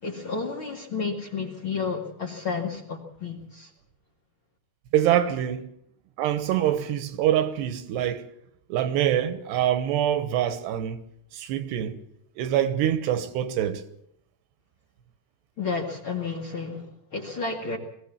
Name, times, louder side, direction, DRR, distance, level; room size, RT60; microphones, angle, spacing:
voice 1, 0.0-3.7 15.6-17.8, left 4 dB, 40° left, 2.2 m, -31 dB
voice 2, 4.9-5.7 6.2-8.3 8.7-11.0 11.3-12.0 12.4-13.8, right 11 dB, 75° right, 3.2 m, -25 dB
21.0 x 17.0 x 7.3 m
omnidirectional pair, 5.0 m